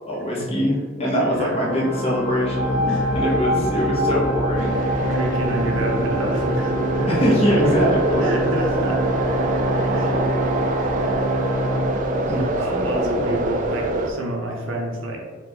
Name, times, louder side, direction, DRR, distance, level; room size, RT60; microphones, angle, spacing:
voice 1, 0.1-4.7 7.1-8.3 9.8-9.9 12.3-13.3, equal, 30° left, -4 dB, 0.9 m, -23 dB
voice 2, 1.1-1.7 2.9-3.1 3.7-3.9 4.8-7.1 8.2-9.0 9.9-10.2 10.8-10.9 12.2-15.2, right 1 dB, 80° right, -1 dB, 0.8 m, -29 dB
Organ, 1.5-12.7, equal, 60° left, 1.3 m, -27 dB
sound 1, 2.3-9.8, equal, 25° right, 1.5 m, -29 dB
sound 2, 4.6-14.1, right 2 dB, 40° right, 0.3 m, -24 dB
4.2 x 2.5 x 2.8 m, 1.5 s
head